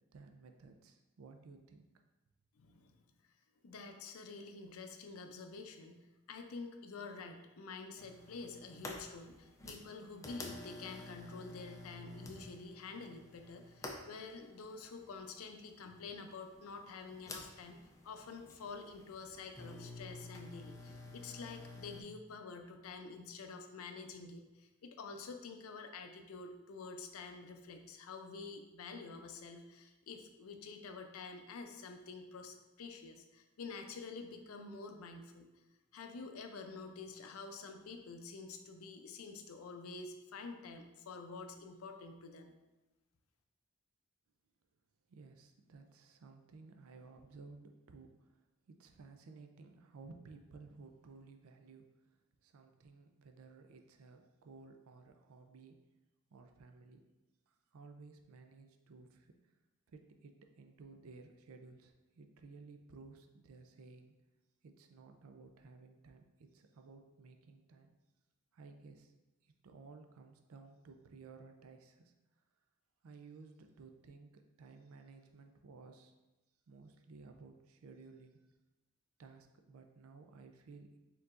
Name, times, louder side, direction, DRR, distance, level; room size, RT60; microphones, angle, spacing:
voice 1, 0.1-1.9 45.1-55.8 56.3-57.1 57.5-59.5 59.9-64.1 64.6-67.9 68.5-69.1 69.4-72.1 73.0-76.1 76.7-78.4 79.2-81.0, right 4 dB, 70° right, 6 dB, 0.4 m, -56 dB
voice 2, 2.6-3.0 3.6-35.5 35.9-42.5, left 4 dB, 75° left, 6 dB, 0.5 m, -48 dB
sound 1, 8.0-22.0, left 2 dB, 15° left, 0.4 m, -51 dB
4.6 x 3.9 x 2.4 m, 1.1 s
head